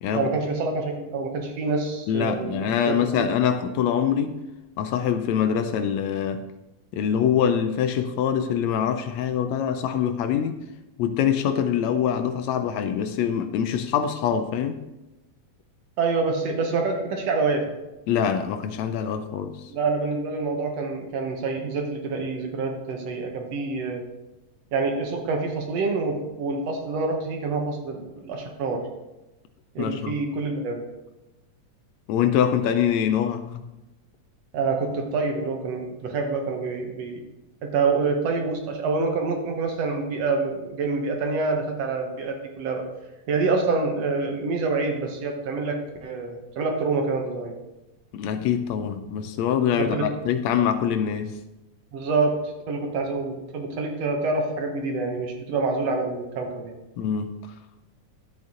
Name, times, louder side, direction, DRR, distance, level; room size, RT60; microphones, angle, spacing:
voice 1, 0.1-3.3 16.0-17.6 19.7-24.0 24.7-28.8 29.8-30.8 34.5-37.2 37.6-42.8 43.3-47.5 49.8-50.0 51.9-52.3 52.7-56.7, right 4 dB, 65° right, 3 dB, 2.2 m, -26 dB
voice 2, 2.1-4.4 4.8-6.4 6.9-10.6 11.0-14.8 18.1-19.7 29.8-30.2 32.1-33.6 48.1-51.4 57.0-57.3, left 8 dB, 75° left, 9 dB, 1.8 m, -24 dB
11.5 x 8.0 x 3.8 m, 0.98 s
omnidirectional pair, 3.3 m